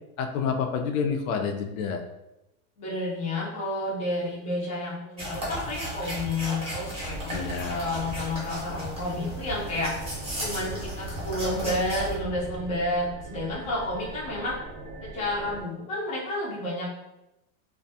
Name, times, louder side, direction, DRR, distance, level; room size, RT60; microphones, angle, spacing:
voice 1, 0.2-2.0 7.3-7.9, left 6 dB, 80° left, 4 dB, 0.5 m, -28 dB
voice 2, 2.8-9.9 10.4-14.5 15.0-17.0, left 1 dB, 20° left, -5 dB, 0.5 m, -30 dB
sound 1, 5.2-12.1, equal, 15° right, 0.7 m, -35 dB
sound 2, 7.0-15.6, right 2 dB, 70° right, 0.7 m, -40 dB
2.5 x 2.2 x 2.6 m, 0.92 s
supercardioid pair, 155°, 40 cm